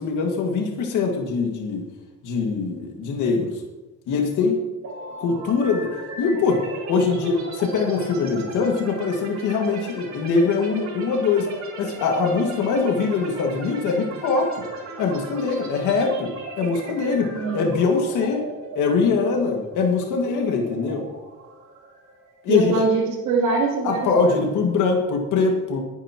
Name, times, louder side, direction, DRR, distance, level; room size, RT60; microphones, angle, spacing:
voice 1, 0.0-1.9 2.2-3.5 4.1-4.6 5.2-6.6 6.9-11.5 11.8-14.7 15.0-18.4 18.8-21.1 22.4-22.8 23.8-25.8, left 4 dB, 90° left, 2 dB, 2.1 m, -22 dB
sound 1, 4.8-22.6, right 3 dB, 65° right, 3.6 m, -38 dB
voice 2, 17.3-17.6 22.5-24.4, right 4 dB, 85° right, -7 dB, 3.1 m, -23 dB
21.5 x 9.6 x 3.0 m, 1.1 s
cardioid pair, 90°, 30 cm